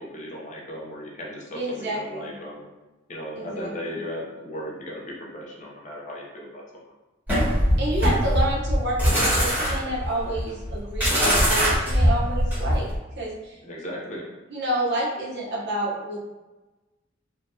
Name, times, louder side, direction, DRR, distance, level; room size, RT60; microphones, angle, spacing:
voice 1, 0.0-2.6 3.1-6.6 13.6-14.3, equal, 40° left, -3 dB, 0.6 m, -36 dB
voice 2, 1.5-2.3 3.3-3.9 7.8-12.9 13.2-13.6 14.5-16.2, right 1 dB, 60° right, -4 dB, 0.8 m, -29 dB
sound 1, 7.3-13.0, equal, 10° right, 1.2 m, -22 dB
3.2 x 2.2 x 2.7 m, 1.1 s
head